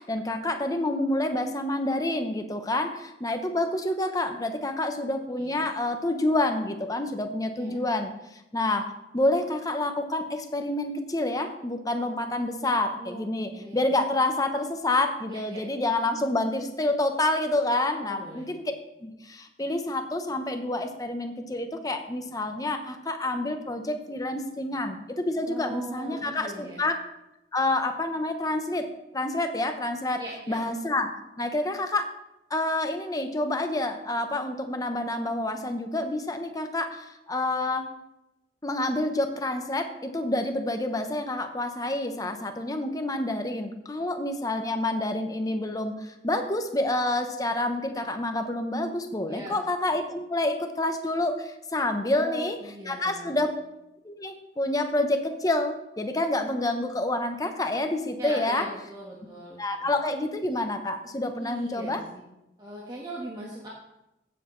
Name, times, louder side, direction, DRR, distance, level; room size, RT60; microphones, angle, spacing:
voice 1, 0.0-8.1 8.5-18.7 19.0-27.0 27.5-28.9 29.1-30.2 30.5-32.1 32.5-37.9 38.6-52.6 52.9-53.5 54.0-58.6 59.6-62.0, left 2 dB, 20° left, 6 dB, 0.8 m, -28 dB
voice 2, 13.5-13.8 15.3-15.6 18.0-18.5 25.4-26.8 30.2-30.6 49.3-49.6 52.1-53.4 58.1-59.9 61.3-62.2 62.6-63.7, right 1 dB, 25° right, -4 dB, 1.4 m, -40 dB
15.5 x 7.2 x 3.2 m, 0.89 s
head